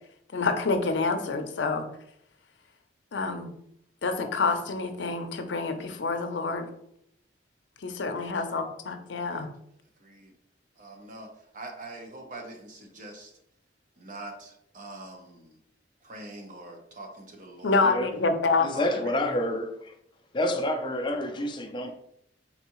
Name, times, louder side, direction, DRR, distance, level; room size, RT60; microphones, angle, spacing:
voice 1, 0.3-1.9 3.1-3.5 4.0-6.7 7.8-9.5 17.6-18.7, left 3 dB, 80° left, 0.6 m, -27 dB
voice 2, 9.2-9.5 10.0-10.3 10.8-13.3 14.0-15.6 16.0-17.9 18.7-19.1, right 2 dB, 45° right, 0.7 m, -43 dB
voice 3, 18.6-19.9 20.3-22.0, left 1 dB, 25° left, 0.4 m, -28 dB
4.0 x 3.5 x 3.0 m
head